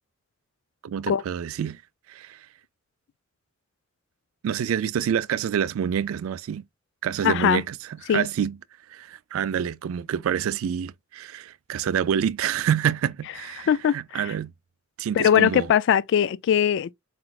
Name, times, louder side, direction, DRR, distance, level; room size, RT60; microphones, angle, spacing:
voice 1, 0.8-1.8 2.1-2.5 4.4-6.6 7.0-7.8 8.1-8.6 8.9-14.5 15.0-15.7, right 8 dB, 80° right, 0.3 m, -27 dB
voice 2, 7.2-7.6 8.1-8.2 13.7-14.3 15.1-16.9, left 9 dB, 60° left, 0.3 m, -21 dB
4.4 x 4.0 x 2.3 m
head